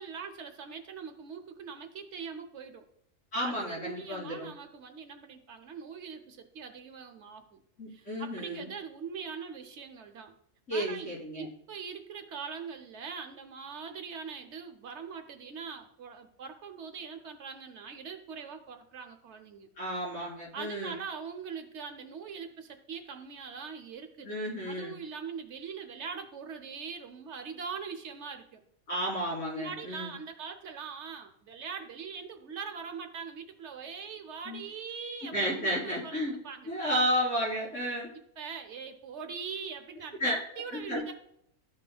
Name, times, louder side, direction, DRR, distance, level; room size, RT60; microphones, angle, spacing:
voice 1, 0.0-2.9 3.4-7.6 7.9-10.3 10.7-19.7 20.5-28.6 29.5-36.7 38.4-41.1, right 6 dB, 60° right, 6 dB, 1.0 m, -42 dB
voice 2, 3.3-4.5 7.8-8.7 10.7-11.5 19.8-20.9 24.2-24.9 28.9-30.1 34.5-34.6 35.2-36.4 36.7-38.1 40.2-40.4 40.7-41.0, equal, 75° left, -8 dB, 3.8 m, -32 dB
13.5 x 5.1 x 2.2 m, 0.73 s
omnidirectional pair, 1.5 m